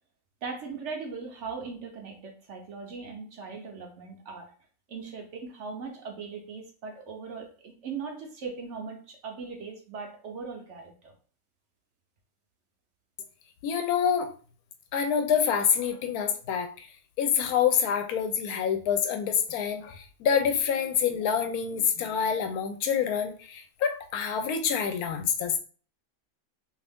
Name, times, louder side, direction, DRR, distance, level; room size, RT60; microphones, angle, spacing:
voice 1, 0.4-4.5 4.9-11.1, right 5 dB, 60° right, 2 dB, 0.8 m, -39 dB
voice 2, 13.6-14.3 14.9-16.9 17.2-25.6, left 7 dB, 80° left, 7 dB, 1.0 m, -27 dB
2.7 x 2.5 x 3.4 m, 0.40 s
omnidirectional pair, 1.6 m